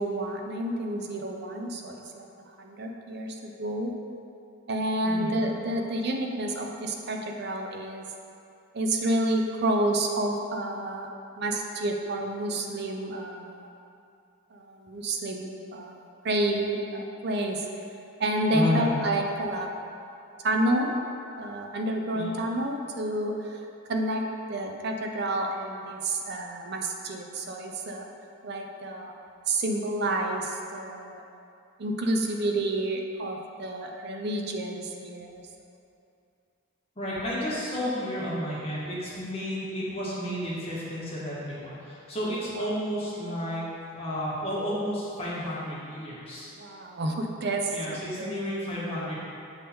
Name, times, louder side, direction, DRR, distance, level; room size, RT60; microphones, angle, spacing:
voice 1, 0.0-2.3 2.6-3.9 4.7-8.0 8.7-11.1 11.4-13.7 14.5-17.7 18.2-19.7 20.4-20.9 21.4-23.6 23.9-24.2 24.5-28.0 28.4-29.1 29.5-31.2 31.8-35.4 42.6-42.7 46.6-48.4, right 1 dB, 50° right, 2 dB, 0.5 m, -29 dB
voice 2, 5.0-5.4 18.5-18.9 22.1-22.3 37.0-43.6 43.9-46.5 47.7-49.1, left 1 dB, 25° left, -8 dB, 1.4 m, -31 dB
6.9 x 3.7 x 4.3 m, 2.6 s
head